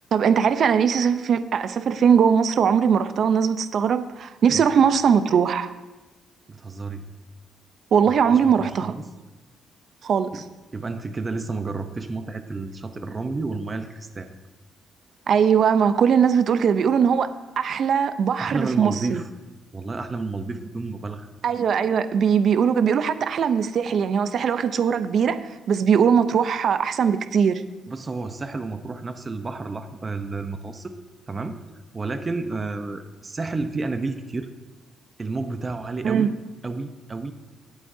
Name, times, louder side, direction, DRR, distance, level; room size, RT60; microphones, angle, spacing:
voice 1, 0.1-5.7 7.9-8.9 10.0-10.4 15.3-17.3 17.6-19.2 21.4-27.6 36.0-36.3, right 7 dB, 60° right, 11 dB, 0.7 m, -20 dB
voice 2, 6.5-7.0 8.1-9.0 10.3-10.4 10.7-14.3 18.4-19.3 19.7-21.3 27.9-30.9 31.3-31.6 31.9-34.5 35.2-36.3 36.6-37.3, right 3 dB, 30° right, 7 dB, 0.8 m, -31 dB
19.0 x 8.2 x 2.8 m, 1.1 s
cardioid pair, 90°, 0 cm